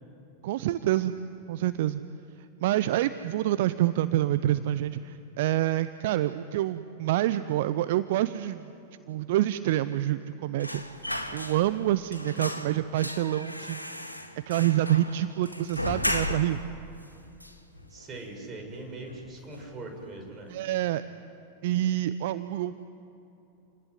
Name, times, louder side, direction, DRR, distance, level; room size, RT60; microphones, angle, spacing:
voice 1, 0.4-1.1 1.5-2.0 2.6-8.7 9.1-13.8 14.5-16.6 20.5-21.0 21.6-22.8, right 13 dB, 55° right, 13 dB, 0.7 m, -27 dB
sound 1, 10.6-11.9 12.1-16.7 17.0-17.1 17.4-18.2 18.5-18.8 19.1-19.8 20.1-20.2, left 1 dB, 85° left, 2.0 m, -35 dB
voice 2, 17.9-20.5, right 2 dB, 25° right, 3 dB, 6.6 m, -41 dB
28.5 x 19.0 x 9.6 m, 2.8 s
figure-of-eight pair, 90°, 0 cm